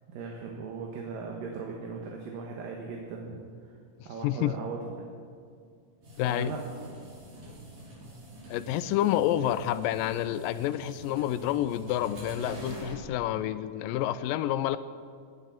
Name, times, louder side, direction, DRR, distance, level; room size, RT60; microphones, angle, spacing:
voice 1, 0.1-3.7 4.1-5.1 6.3-6.6, right 4 dB, 70° right, 0 dB, 2.9 m, -38 dB
voice 2, 4.2-4.6 6.2-6.5 8.5-14.8, left 12 dB, 80° left, 14 dB, 2.1 m, -28 dB
sound 1, 6.0-13.0, right 1 dB, 55° right, 6.1 m, -45 dB
19.0 x 10.0 x 6.0 m, 2.2 s
omnidirectional pair, 4.3 m